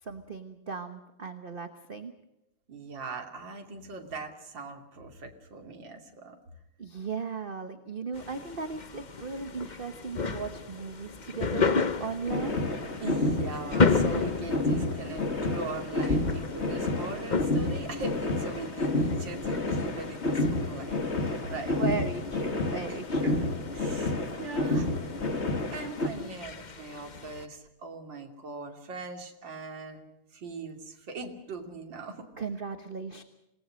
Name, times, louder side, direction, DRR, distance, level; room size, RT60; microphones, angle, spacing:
voice 1, 0.0-2.1 6.8-12.6 21.7-23.5 32.4-33.2, right 4 dB, 30° right, 8 dB, 1.1 m, -37 dB
voice 2, 2.7-6.4 13.0-21.8 22.9-23.0 23.2-23.4 23.7-24.9 25.7-30.0 30.3-32.3, right 3 dB, 60° right, 3 dB, 3.4 m, -40 dB
sound 1, 8.1-27.4, left 4 dB, 65° left, 0.4 m, -34 dB
sound 2, 12.3-26.1, left 2 dB, 30° left, 2.4 m, -30 dB
27.0 x 19.0 x 6.4 m, 0.91 s
omnidirectional pair, 2.4 m